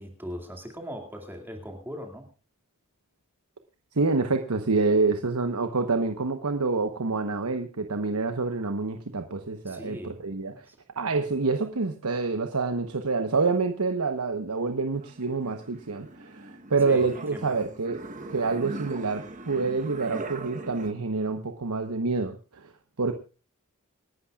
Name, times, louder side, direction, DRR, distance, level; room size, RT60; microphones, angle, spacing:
voice 1, 0.0-2.3 9.7-10.2 10.5-10.8 16.8-17.6, equal, 10° right, 3 dB, 2.3 m, -39 dB
voice 2, 3.9-10.7 11.0-18.0 18.3-22.7 23.0-23.1, right 3 dB, 85° right, 7 dB, 1.1 m, -27 dB
sound 1, 14.5-20.9, right 2 dB, 35° right, 1.1 m, -41 dB
28.0 x 11.5 x 2.4 m, 0.35 s
head